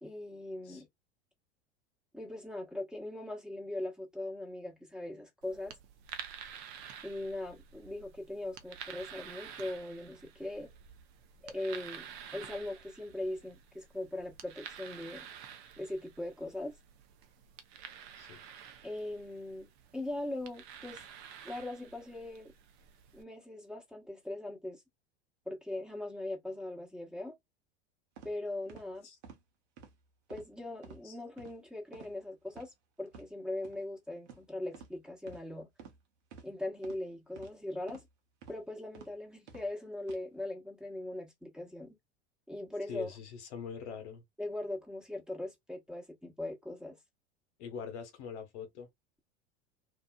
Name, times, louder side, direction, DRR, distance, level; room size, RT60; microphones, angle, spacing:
voice 1, 0.0-0.9 2.1-5.8 7.0-10.7 11.4-15.3 15.8-16.8 18.8-19.7 19.9-21.0 21.4-22.5 23.1-24.8 25.5-27.3 28.2-29.1 30.3-35.7 36.4-38.1 38.5-42.0 42.5-43.1 44.4-47.0, left 1 dB, ahead, 1.1 m, -40 dB
sound 1, 5.4-23.2, right 8 dB, 55° right, 0.8 m, -50 dB
sound 2, 28.2-28.3 28.7-28.9 29.2-29.4 29.8-29.9 30.3-30.5 30.8-31.0 31.4-31.6 31.9-32.1 32.5-32.7 33.1-33.3 33.6-33.8 34.3-34.4 34.7-34.9 35.3-35.4 35.8-36.0 36.3-36.5 36.8-37.0 37.4-37.5 37.9-38.1 38.4-38.6 38.9-39.1 39.5-39.7 40.0-40.2, right 6 dB, 75° right, 1.1 m, -51 dB
voice 2, 42.9-44.2 47.6-48.9, left 7 dB, 70° left, 1.0 m, -43 dB
2.8 x 2.3 x 2.2 m
hypercardioid pair, 90°, 34 cm